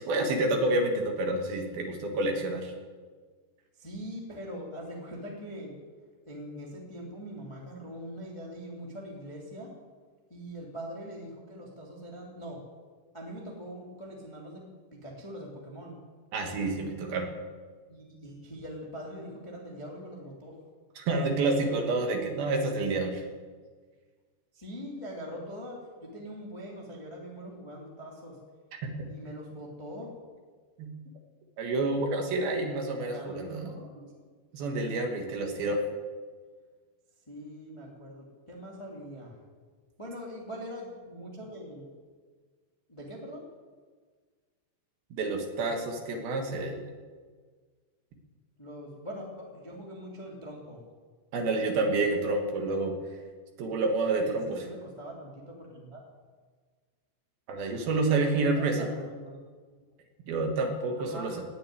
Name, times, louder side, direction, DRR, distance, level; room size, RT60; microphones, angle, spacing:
voice 1, 0.0-2.7 16.3-17.3 21.0-23.2 30.8-30.9 31.6-33.6 34.5-35.8 45.1-46.9 51.3-52.9 53.6-54.6 57.5-58.8 60.3-61.3, right 2 dB, 65° right, 3 dB, 3.2 m, -28 dB
voice 2, 3.7-5.7 6.2-9.7 10.3-12.6 13.1-14.6 14.9-16.0 17.8-20.6 24.5-28.4 29.1-30.2 32.6-34.1 37.3-39.4 40.0-41.9 42.9-43.4 48.6-50.8 54.2-56.0 58.3-59.4 61.0-61.4, equal, 15° left, -2 dB, 1.3 m, -42 dB
18.5 x 6.7 x 9.3 m, 1.5 s
omnidirectional pair, 5.0 m